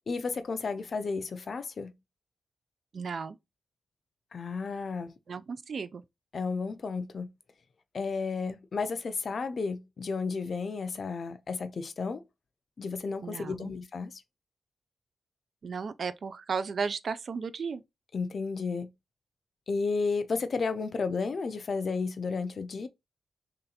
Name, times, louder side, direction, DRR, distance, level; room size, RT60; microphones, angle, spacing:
voice 1, 0.1-1.9 4.3-5.1 6.3-7.3 7.9-12.2 12.8-14.2 18.1-18.9 19.7-22.9, left 4 dB, 45° left, 0.5 m, -32 dB
voice 2, 2.9-3.4 5.3-6.0 13.2-13.7 15.6-17.8, right 5 dB, 50° right, 0.3 m, -34 dB
3.2 x 2.8 x 3.8 m
wide cardioid pair, 165°, 0 cm